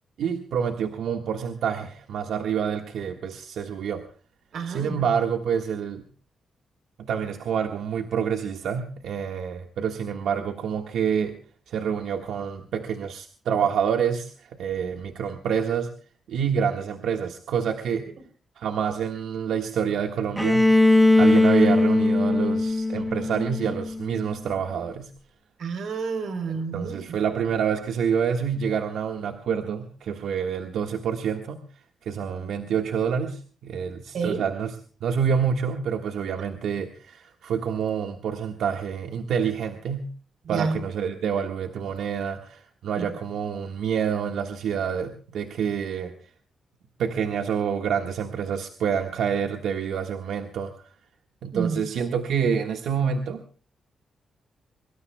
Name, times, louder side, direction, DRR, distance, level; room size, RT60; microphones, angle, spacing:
voice 1, 0.2-4.0 4.7-6.0 7.0-11.4 11.7-15.9 16.3-18.1 18.6-20.7 21.2-25.1 26.7-31.6 32.0-34.7 35.0-40.1 40.5-46.1 47.0-50.7 51.4-53.4, right 7 dB, 80° right, 4 dB, 1.5 m, -27 dB
voice 2, 4.5-5.0 25.6-27.2 34.1-34.4 40.4-40.8 42.9-43.1 51.5-51.8, right 5 dB, 60° right, 10 dB, 3.5 m, -29 dB
Bowed string instrument, 20.4-24.2, left 2 dB, 5° right, 1.2 m, -20 dB
24.0 x 23.5 x 2.3 m, 0.42 s
wide cardioid pair, 175°, 0 cm